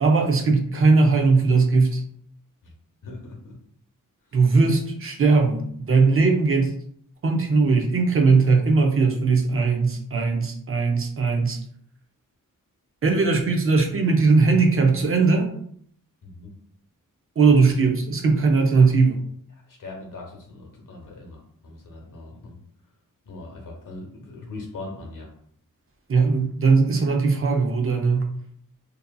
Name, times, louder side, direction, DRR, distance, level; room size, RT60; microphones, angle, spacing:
voice 1, 0.0-2.0 4.3-6.8 7.2-11.6 13.0-15.5 17.4-19.2 26.1-28.3, right 4 dB, 40° right, 2 dB, 0.5 m, -19 dB
voice 2, 3.0-3.6 16.2-16.5 19.5-22.6 23.2-25.3, left 2 dB, 70° left, 0 dB, 0.9 m, -40 dB
2.7 x 2.5 x 2.3 m, 0.63 s
wide cardioid pair, 105°, 33 cm